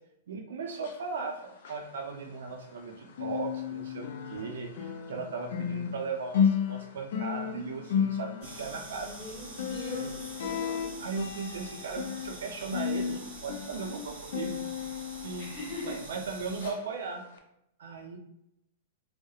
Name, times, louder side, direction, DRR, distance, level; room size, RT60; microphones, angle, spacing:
voice 1, 0.3-1.4 1.7-9.1 10.0-10.1 11.0-14.6 15.2-17.2 17.8-18.2, right 4 dB, 80° right, 3 dB, 0.4 m, -37 dB
sound 1, 0.7-2.9 3.1-16.2 16.6-16.8 17.3-17.4, left 7 dB, 60° left, 0.3 m, -34 dB
sound 2, 8.4-16.7, right 2 dB, 25° right, 1.3 m, -46 dB
voice 2, 9.0-10.9 15.4-15.9, left 1 dB, 15° left, -9 dB, 1.2 m, -41 dB
2.3 x 2.0 x 2.7 m, 0.79 s
supercardioid pair, 170°, 0 cm